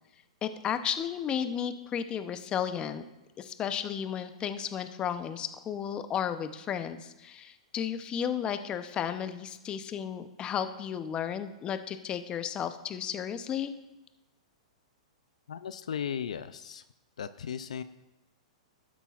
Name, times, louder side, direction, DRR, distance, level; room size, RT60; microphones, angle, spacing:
voice 1, 0.4-3.0 3.4-13.7, left 8 dB, 25° left, 10 dB, 0.7 m, -33 dB
voice 2, 15.5-16.8 17.2-17.8, left 8 dB, 80° left, 13 dB, 0.4 m, -36 dB
18.0 x 8.2 x 2.4 m, 0.98 s
hypercardioid pair, 120°, 4 cm